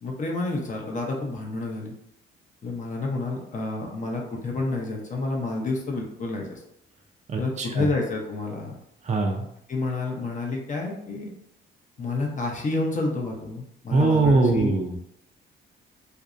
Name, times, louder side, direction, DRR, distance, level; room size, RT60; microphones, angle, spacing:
voice 1, 0.0-1.9 2.6-6.6 7.4-8.8 9.7-11.3 12.0-14.7, left 2 dB, 40° left, 0 dB, 0.6 m, -29 dB
voice 2, 7.3-7.9 9.0-9.5 13.9-15.0, right 3 dB, 35° right, 2 dB, 0.4 m, -22 dB
2.5 x 2.0 x 2.4 m, 0.76 s
cardioid pair, 90°, 20 cm